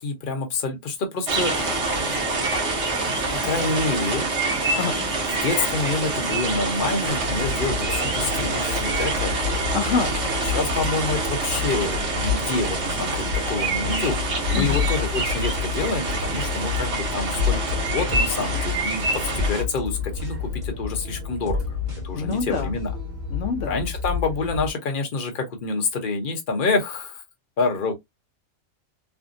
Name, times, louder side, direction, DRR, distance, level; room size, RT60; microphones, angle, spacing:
voice 1, 0.0-1.8 2.1-2.9 3.3-4.3 5.2-9.6 10.4-21.6 22.0-22.9 23.6-27.2 27.6-27.9, left 3 dB, 50° left, 0.9 m, -27 dB
sound 1, 1.3-19.6, right 3 dB, 65° right, 1.3 m, -26 dB
voice 2, 4.8-5.1 9.7-10.2 14.5-14.9 22.1-22.7 23.3-23.7, left 5 dB, 80° left, 0.9 m, -26 dB
sound 2, 7.1-24.7, left 6 dB, 85° right, 1.8 m, -30 dB
sound 3, 16.2-23.9 24.4-25.0, left 1 dB, 30° right, 1.1 m, -37 dB
3.4 x 2.1 x 2.5 m
omnidirectional pair, 1.3 m